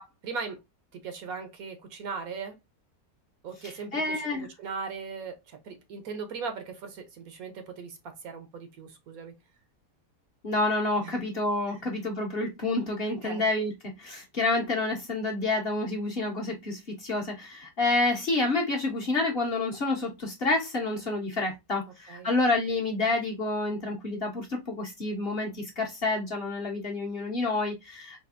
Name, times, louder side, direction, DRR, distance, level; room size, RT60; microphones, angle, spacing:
voice 1, 0.2-0.6 0.9-2.6 3.4-9.4 11.0-11.2 11.7-11.9 13.2-13.4 22.1-22.3, right 5 dB, 65° right, 1.2 m, -39 dB
voice 2, 3.6-4.5 10.4-28.2, left 2 dB, 45° left, 1.0 m, -29 dB
4.2 x 2.6 x 2.5 m
omnidirectional pair, 1.7 m